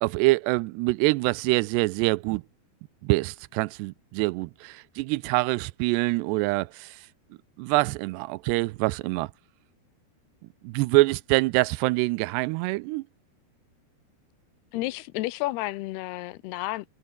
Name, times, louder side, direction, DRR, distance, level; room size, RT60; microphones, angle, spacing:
voice 1, 0.0-2.4 3.0-7.0 7.6-9.3 10.6-13.0, right 22 dB, 85° right, 2.7 m, -25 dB
voice 2, 14.7-16.9, left 18 dB, 80° left, 2.7 m, -31 dB
omnidirectional pair, 4.9 m